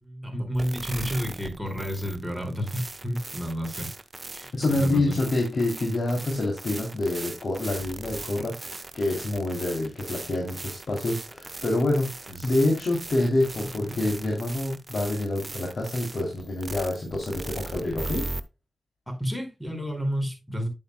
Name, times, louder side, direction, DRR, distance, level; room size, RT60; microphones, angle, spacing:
voice 1, 0.0-3.9 4.3-4.5 4.8-5.1 12.3-12.5 13.8-14.0 19.1-20.7, equal, 5° left, 4.7 m, -31 dB
sound 1, 0.5-18.4, right 2 dB, 35° right, 0.9 m, -39 dB
voice 2, 4.5-18.2, left 2 dB, 65° left, 2.9 m, -27 dB
9.8 x 8.1 x 2.2 m
cardioid pair, 60°, 0 cm